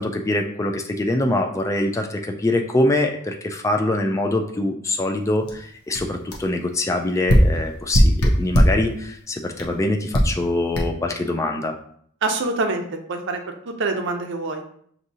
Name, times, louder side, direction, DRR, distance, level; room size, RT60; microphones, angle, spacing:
voice 1, 0.0-11.8, left 1 dB, 15° left, 3 dB, 0.3 m, -24 dB
sound 1, 5.5-5.6 5.9-6.1 6.3-6.5 7.3-8.9 9.6-9.7 10.1-10.4 10.7-10.8, equal, 70° left, 0.8 m, -17 dB
voice 2, 12.2-13.4 13.7-14.6, right 3 dB, 55° right, 4 dB, 0.6 m, -25 dB
6.1 x 2.7 x 2.7 m, 0.64 s
head